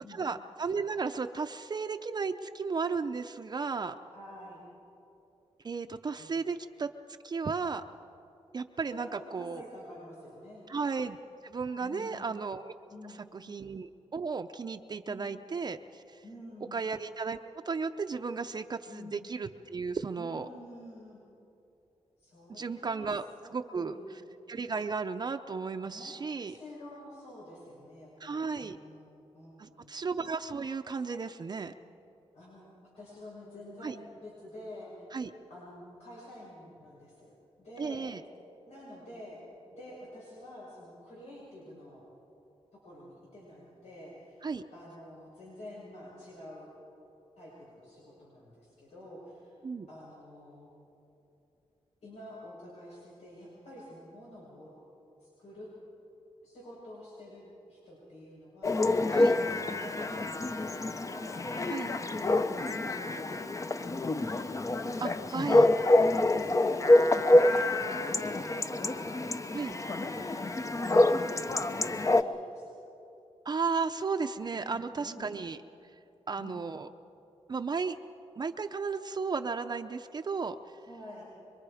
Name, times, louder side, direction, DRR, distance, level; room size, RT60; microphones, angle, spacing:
voice 1, 0.1-4.0 5.6-6.9 7.2-7.8 8.5-9.6 10.7-11.2 11.4-12.7 13.3-16.2 16.7-17.4 17.6-20.5 22.5-23.2 23.5-24.0 24.5-26.6 28.2-28.8 29.6-31.7 33.8-33.9 35.1-35.3 37.8-38.2 44.4-44.6 49.6-49.9 59.1-59.3 61.7-61.9 65.0-65.7 69.5-69.7 73.4-75.6 76.3-76.9 77.5-78.0 78.4-80.6, right 5 dB, 40° right, 6 dB, 0.6 m, -34 dB
voice 2, 4.1-4.6 6.2-6.3 8.9-10.6 11.8-12.4 12.9-13.6 15.0-15.3 16.2-16.9 18.9-19.3 20.2-21.2 22.2-23.1 23.4-24.1 25.8-26.1 26.5-29.9 32.3-35.1 35.5-38.1 38.7-39.4 39.7-42.0 42.7-44.4 44.7-46.7 47.4-49.5 49.9-50.7 52.0-54.7 55.2-55.7 56.4-57.4 57.7-59.0 59.2-61.7 62.0-64.9 65.4-66.0 66.3-69.0 69.7-72.8 74.6-75.4 76.4-76.6 80.8-81.2, left 1 dB, 85° left, -6 dB, 6.1 m, -48 dB
Chatter / Bark / Livestock farm animals working animals, 58.6-72.2, left 2 dB, 30° left, 0.7 m, -26 dB
25.5 x 23.0 x 5.0 m, 2.8 s
wide cardioid pair, 105°, 11 cm